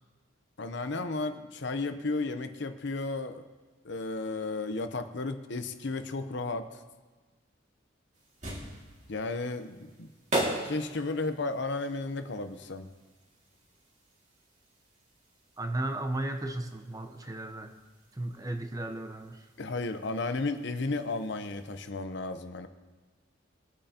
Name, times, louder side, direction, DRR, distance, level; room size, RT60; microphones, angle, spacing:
voice 1, 0.6-3.4 3.8-6.8 9.1-10.1 10.6-12.9 19.6-22.7, left 3 dB, 60° left, 8 dB, 0.8 m, -33 dB
sound 1, 8.1-21.9, right 1 dB, 40° right, 2.2 m, -41 dB
voice 2, 15.6-17.7 18.2-19.4, right 1 dB, 20° right, 6 dB, 0.7 m, -35 dB
21.5 x 8.8 x 2.9 m, 1.3 s
head